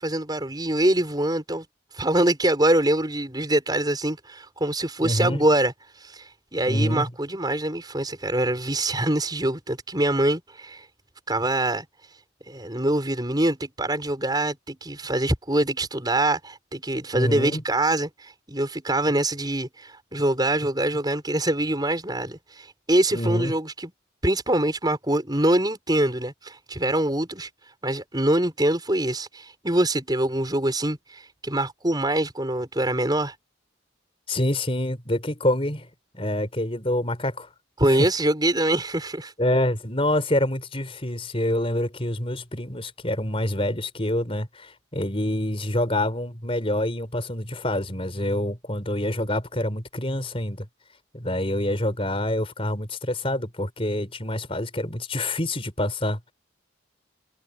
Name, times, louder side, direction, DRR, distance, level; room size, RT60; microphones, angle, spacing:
voice 1, 0.0-1.6 1.9-5.7 6.0-10.8 11.3-11.9 12.5-23.9 24.2-27.5 27.8-33.3 37.8-39.3, right 1 dB, 20° right, 5.7 m, -24 dB
voice 2, 5.0-5.4 6.7-7.1 17.1-17.6 23.1-23.5 34.3-35.9 36.1-37.5 37.9-38.1 39.4-50.7 51.1-56.3, left 1 dB, 30° left, 4.4 m, -26 dB
head